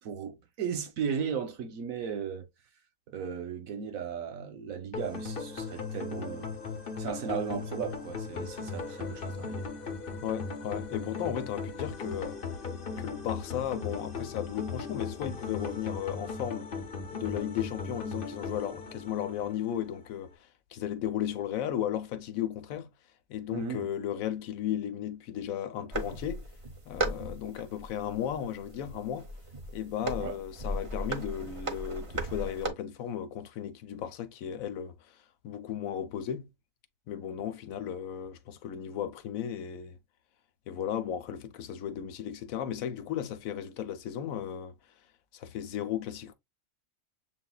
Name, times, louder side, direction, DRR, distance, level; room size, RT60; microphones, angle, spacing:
voice 1, 0.0-2.5 3.1-6.5 7.0-9.6 23.5-23.9 30.2-30.4, right 7 dB, 90° right, 1.3 m, -36 dB
sound 1, 4.9-20.0, left 4 dB, 45° left, 1.0 m, -38 dB
voice 2, 10.2-12.4 13.0-16.7 17.1-22.9 23.3-26.4 26.9-29.3 29.7-35.2 35.4-36.5 37.1-40.0 40.7-44.7 45.3-46.3, left 10 dB, 85° left, 1.1 m, -35 dB
sound 2, 25.9-32.7, right 2 dB, 35° right, 0.6 m, -37 dB
7.5 x 2.5 x 2.2 m
omnidirectional pair, 1.4 m